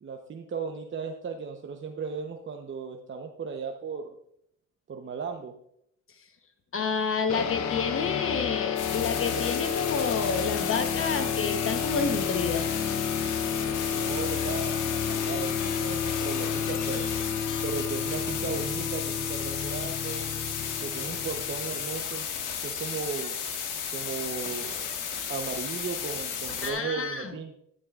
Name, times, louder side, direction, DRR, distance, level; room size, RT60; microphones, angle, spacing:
voice 1, 0.0-4.1 4.9-5.5 13.9-17.1 17.6-20.3 20.8-22.3 22.6-23.4 23.9-24.8 25.3-27.6, right 5 dB, 40° right, 3 dB, 1.0 m, -36 dB
voice 2, 6.7-12.6 26.6-27.3, left 5 dB, 45° left, 7 dB, 1.1 m, -29 dB
sound 1, 7.3-22.1, left 7 dB, 65° left, 1.0 m, -31 dB
sound 2, 8.8-26.7, left 7 dB, 90° left, 1.7 m, -34 dB
12.0 x 11.0 x 2.5 m, 0.72 s
cardioid pair, 90°, 30 cm